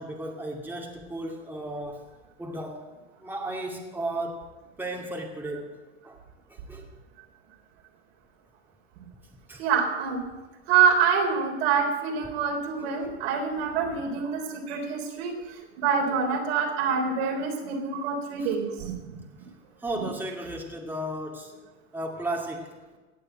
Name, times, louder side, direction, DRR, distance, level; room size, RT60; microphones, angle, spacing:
voice 1, 0.0-2.1 2.4-2.9 3.2-4.4 4.8-5.7 6.0-6.2 6.5-6.8 9.5-9.7 18.4-18.6 19.8-21.5 21.9-22.7, right 1 dB, 5° right, 0 dB, 2.4 m, -34 dB
voice 2, 9.6-10.2 10.7-15.4 15.8-18.9 20.0-20.1, right 6 dB, 65° right, 2 dB, 3.7 m, -26 dB
17.5 x 6.8 x 8.7 m, 1.2 s
hypercardioid pair, 100°, 33 cm